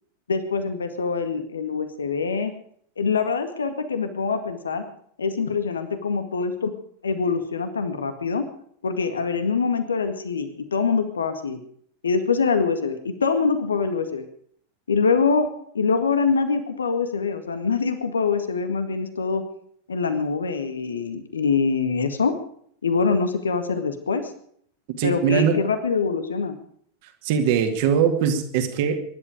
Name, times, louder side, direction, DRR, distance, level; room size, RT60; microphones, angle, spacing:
voice 1, 0.3-2.5 3.0-4.8 5.2-6.7 7.0-8.5 8.8-11.6 12.0-14.3 14.9-15.5 15.7-19.4 19.9-22.3 22.8-24.3 25.0-26.6, left 5 dB, 70° left, 9 dB, 1.9 m, -24 dB
voice 2, 25.0-25.6 27.2-29.0, right 7 dB, 50° right, 5 dB, 2.4 m, -21 dB
23.5 x 11.5 x 5.1 m, 0.63 s
figure-of-eight pair, 90°, 0 cm